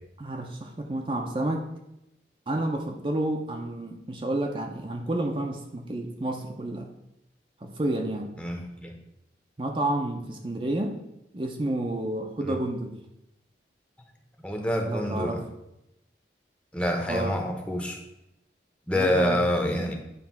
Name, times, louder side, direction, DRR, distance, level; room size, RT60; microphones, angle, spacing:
voice 1, 0.2-1.7 2.5-6.9 7.6-8.3 9.6-11.0 11.3-13.0 14.9-15.4 17.1-17.4 18.9-19.4, right 1 dB, 30° right, 2 dB, 0.6 m, -30 dB
voice 2, 8.4-8.9 12.4-12.6 14.4-15.4 16.7-18.0 18.9-19.9, left 1 dB, 5° left, 2 dB, 0.9 m, -27 dB
9.3 x 3.2 x 5.9 m, 0.87 s
head